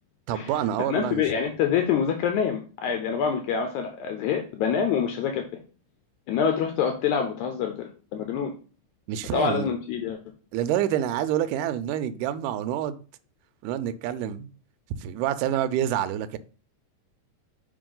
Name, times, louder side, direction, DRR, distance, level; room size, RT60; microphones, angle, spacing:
voice 1, 0.3-1.2 9.1-9.7 10.5-13.0 13.6-14.5 15.0-16.4, right 11 dB, 80° right, 2.1 m, -27 dB
voice 2, 0.9-5.4 6.3-8.5 9.3-10.2, left 7 dB, 80° left, 1.9 m, -26 dB
5.2 x 4.8 x 3.8 m
omnidirectional pair, 3.8 m